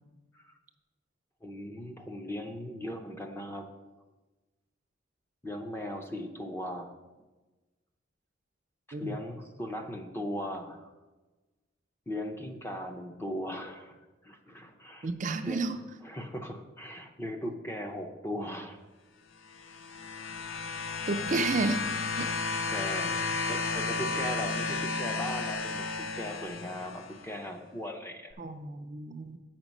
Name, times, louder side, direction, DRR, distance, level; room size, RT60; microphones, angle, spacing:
voice 1, 1.4-3.7 5.4-6.9 8.9-10.9 12.1-14.0 14.2-15.1 15.4-15.6 16.0-18.8 22.7-28.4, equal, 10° left, 4 dB, 0.6 m, -38 dB
voice 2, 15.0-15.8 21.1-21.8 22.2-22.7 28.4-29.4, right 3 dB, 40° right, 6 dB, 0.4 m, -32 dB
sound 1, 19.5-27.3 28.3-28.4, left 4 dB, 80° left, 0.5 m, -33 dB
8.2 x 5.9 x 5.3 m, 1.2 s
head